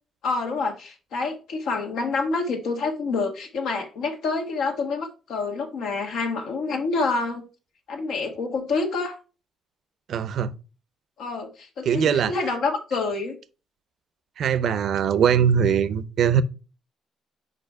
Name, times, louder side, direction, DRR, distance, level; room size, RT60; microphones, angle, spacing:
voice 1, 0.2-7.5 7.9-9.2 11.2-13.4, left 3 dB, 80° left, 1.5 m, -27 dB
voice 2, 10.1-10.5 11.9-12.3 14.4-16.4, right 8 dB, 65° right, 0.5 m, -21 dB
4.9 x 4.8 x 4.6 m
cardioid pair, 90°, 0 cm